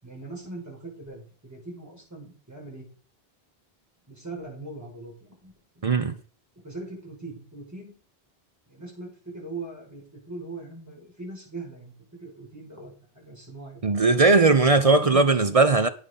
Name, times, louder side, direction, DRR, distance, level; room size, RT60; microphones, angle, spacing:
voice 1, 0.0-2.9 4.1-6.0 6.6-7.9 8.7-11.9 12.2-13.8, right 2 dB, 15° right, 6.1 m, -41 dB
voice 2, 5.8-6.2 13.8-15.9, right 3 dB, 40° right, 0.7 m, -19 dB
9.5 x 8.5 x 5.4 m
omnidirectional pair, 1.0 m